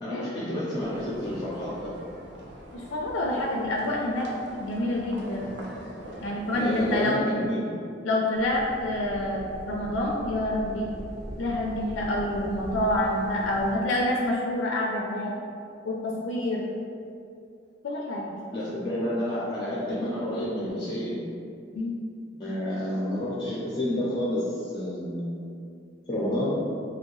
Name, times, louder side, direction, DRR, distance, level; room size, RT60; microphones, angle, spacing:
voice 1, 0.0-1.9 6.6-7.7 9.8-9.9 18.5-21.2 22.4-25.4 26.1-26.5, left 1 dB, 25° left, -7 dB, 0.5 m, -29 dB
sound 1, 0.8-7.0, right 1 dB, 65° right, 0.4 m, -43 dB
voice 2, 2.7-4.3 4.6-5.5 6.2-7.2 8.0-10.9 11.4-15.3 15.8-16.7 17.8-18.3 21.7-21.9, left 1 dB, 90° left, -2 dB, 0.3 m, -27 dB
sound 2, 8.3-13.8, equal, 20° right, 0.6 m, -41 dB
2.8 x 2.7 x 3.0 m, 2.4 s
head